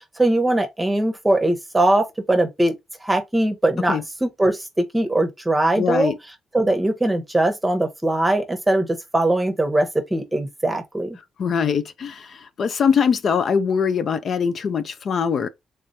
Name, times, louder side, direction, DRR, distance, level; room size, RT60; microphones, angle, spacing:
voice 1, 0.2-2.7 3.0-6.1 6.5-11.2, right 1 dB, 10° right, 0.9 m, -21 dB
voice 2, 5.8-6.2 11.4-15.5, left 6 dB, 55° left, 0.5 m, -22 dB
3.4 x 3.0 x 2.6 m
cardioid pair, 85°, 0 cm